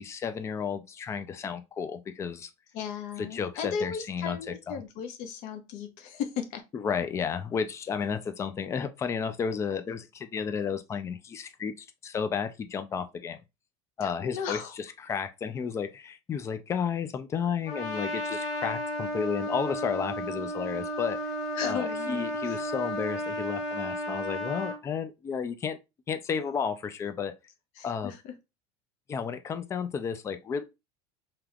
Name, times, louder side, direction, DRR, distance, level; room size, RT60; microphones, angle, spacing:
voice 1, 0.0-2.5 3.2-4.4 4.7-4.8 6.7-13.4 14.0-21.2 21.6-25.8 26.1-27.3 27.8-28.1 29.1-30.6, left 6 dB, 20° left, 0.4 m, -32 dB
voice 2, 2.7-6.6 14.0-14.8 21.5-22.6 27.8-28.3, left 7 dB, 55° left, 0.8 m, -36 dB
Trumpet, 17.7-24.8, equal, 80° left, 2.1 m, -33 dB
3.4 x 2.9 x 2.3 m
cardioid pair, 155°, 15 cm